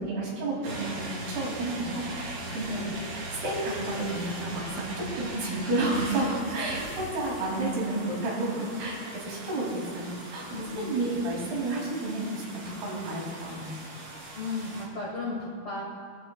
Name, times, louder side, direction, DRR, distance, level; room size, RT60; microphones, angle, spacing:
voice 1, 0.0-9.0 9.2-13.7, right 2 dB, 85° right, -4 dB, 4.5 m, -31 dB
sound 1, 0.6-14.8, right 2 dB, 70° right, 4.3 m, -40 dB
voice 2, 10.5-11.1 14.3-15.8, left 3 dB, 70° left, -5 dB, 1.2 m, -35 dB
18.0 x 12.5 x 2.2 m, 2.2 s
omnidirectional pair, 4.5 m